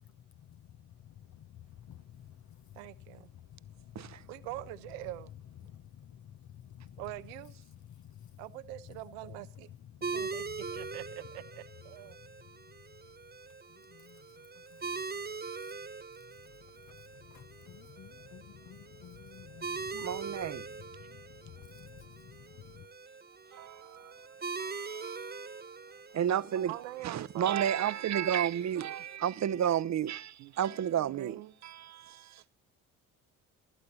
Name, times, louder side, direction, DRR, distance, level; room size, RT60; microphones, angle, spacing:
voice 1, 1.3-2.3 3.5-4.2 5.7-7.0 8.0-8.3 10.0-10.2 13.9-14.2 14.7-14.8 16.9-17.0 17.3-20.0 20.5-20.6 21.0-22.9, left 10 dB, 50° left, 1.0 m, -52 dB
voice 2, 2.7-3.3 4.3-5.3 7.0-7.5 8.4-9.7 10.1-10.4 10.7-12.2 26.6-27.7 28.8-29.1 30.4-30.5 31.0-31.5, right 16 dB, 80° right, 0.9 m, -44 dB
sound 1, 10.0-29.2, right 4 dB, 25° right, 1.5 m, -43 dB
voice 3, 19.9-20.7 23.5-24.1 24.6-25.3 26.1-26.7 27.0-32.4, right 10 dB, 45° right, 0.9 m, -32 dB
18.0 x 13.0 x 4.1 m
hypercardioid pair, 50°, 38 cm